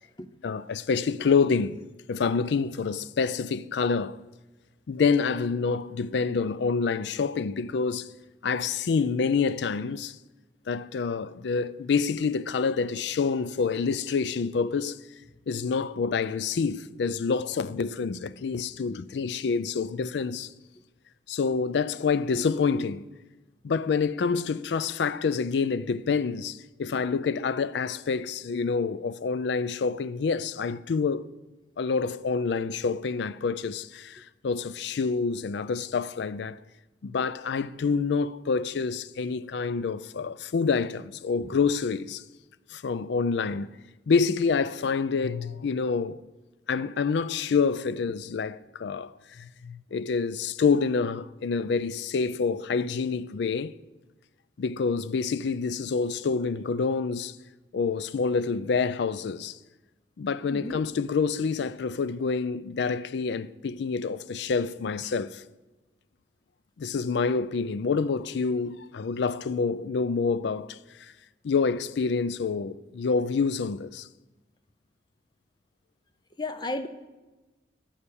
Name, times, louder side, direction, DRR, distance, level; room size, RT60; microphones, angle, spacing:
voice 1, 0.4-1.8 2.1-4.2 4.9-8.1 8.4-10.2 10.7-15.0 15.5-20.5 21.3-23.1 23.6-31.3 31.8-36.6 37.0-42.2 42.7-43.8 44.1-46.2 46.7-53.8 54.6-57.4 57.7-59.6 60.2-65.4 66.8-71.1 71.4-74.1, left 5 dB, 70° left, 0.4 m, -27 dB
voice 2, 60.5-60.8 76.4-76.9, left 2 dB, 25° left, 0.6 m, -32 dB
11.5 x 5.8 x 7.0 m
head